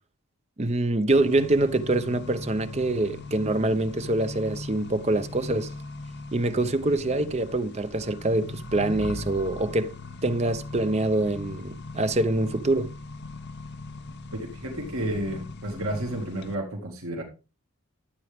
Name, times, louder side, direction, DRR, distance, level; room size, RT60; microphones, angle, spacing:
voice 1, 0.6-5.7 6.3-10.0 10.2-12.9, right 2 dB, 30° right, 0.6 m, -25 dB
Accelerating revving vroom, 1.1-16.5, left 3 dB, 50° left, 0.7 m, -39 dB
voice 2, 14.3-17.2, right 1 dB, 70° right, 2.0 m, -31 dB
12.5 x 8.3 x 3.5 m
head